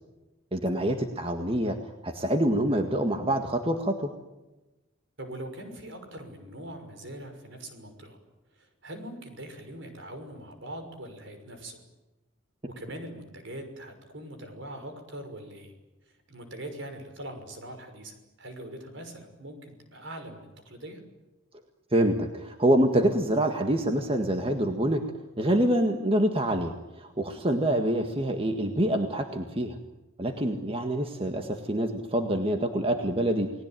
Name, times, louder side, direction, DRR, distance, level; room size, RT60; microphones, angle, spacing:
voice 1, 0.5-4.1 21.9-25.0 25.4-29.8 30.2-33.5, right 1 dB, 25° right, 5 dB, 1.8 m, -26 dB
voice 2, 5.2-8.2 8.5-11.8 12.7-15.7 16.3-21.0, right 1 dB, 60° right, 6 dB, 6.1 m, -42 dB
30.0 x 19.5 x 9.2 m, 1.1 s
head